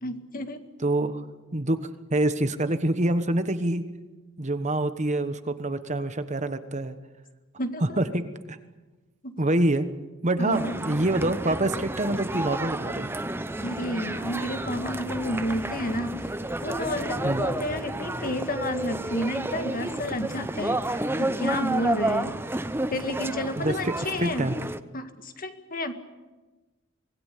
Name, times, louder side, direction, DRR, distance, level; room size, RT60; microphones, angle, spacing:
voice 1, 0.0-0.6 7.6-8.0 9.2-9.3 10.4-10.7 13.6-16.3 16.6-22.3 22.9-24.5 24.9-25.9, left 1 dB, 45° left, 7 dB, 1.9 m, -31 dB
voice 2, 0.8-1.2 1.5-1.8 2.1-3.9 4.4-7.0 7.8-8.6 9.4-9.9 10.2-13.1 17.2-17.5 23.6-23.9 24.2-24.6, right 1 dB, 35° right, 10 dB, 1.3 m, -26 dB
sound 1, 10.5-24.8, right 1 dB, 10° right, 0.8 m, -31 dB
25.5 x 19.5 x 8.4 m, 1.2 s
head